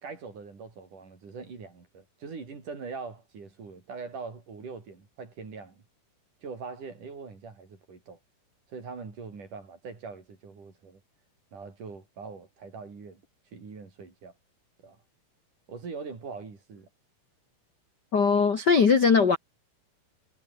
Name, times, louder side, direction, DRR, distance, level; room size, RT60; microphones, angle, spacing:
voice 1, 0.0-5.8 6.4-8.2 8.7-11.0 11.5-13.2 13.5-14.3 14.8-15.0 15.7-16.9, right 4 dB, 55° right, 6.6 m, -42 dB
voice 2, 18.1-19.4, left 5 dB, 45° left, 1.4 m, -20 dB
omnidirectional pair, 4.4 m